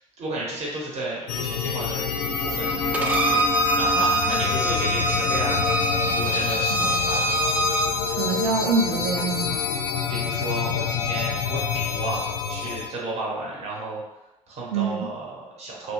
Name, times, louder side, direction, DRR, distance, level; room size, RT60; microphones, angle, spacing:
voice 1, 0.2-3.4 3.7-5.7 6.1-7.5 10.1-12.2 12.5-14.0 14.5-15.9, right 2 dB, 40° right, -4 dB, 0.9 m, -32 dB
sound 1, 1.3-12.9, left 6 dB, 65° left, 0.4 m, -27 dB
Bowed string instrument, 2.9-7.9, right 2 dB, 10° right, 0.4 m, -24 dB
voice 2, 8.1-9.6 14.7-15.1, right 4 dB, 75° right, 3 dB, 0.4 m, -25 dB
2.9 x 2.7 x 3.0 m, 0.98 s
figure-of-eight pair, 55°, 17 cm